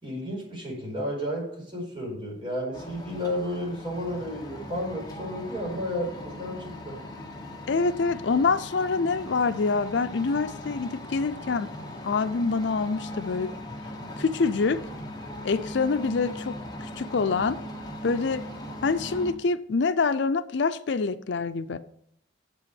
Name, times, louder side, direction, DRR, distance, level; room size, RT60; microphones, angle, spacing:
voice 1, 0.0-7.0, equal, 25° right, 4.9 m, -32 dB
sound 1, 2.7-19.3, left 1 dB, 20° left, 1.1 m, -39 dB
voice 2, 7.7-11.7 12.0-13.5 14.2-14.8 15.4-17.6 18.0-18.4 18.8-21.8, left 4 dB, 70° left, 0.5 m, -26 dB
7.7 x 6.9 x 7.0 m
head